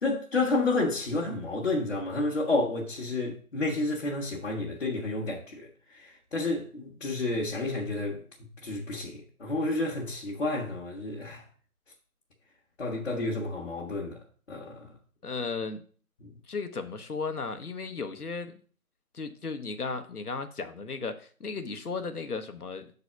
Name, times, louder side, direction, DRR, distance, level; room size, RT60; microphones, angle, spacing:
voice 1, 0.0-11.4 12.8-14.2 14.5-14.9 16.2-16.3, left 2 dB, 45° left, 1.3 m, -30 dB
voice 2, 15.2-15.8 16.5-18.6 19.1-22.9, left 4 dB, 80° left, 1.2 m, -35 dB
6.7 x 4.0 x 5.8 m
figure-of-eight pair, 160°, 45 cm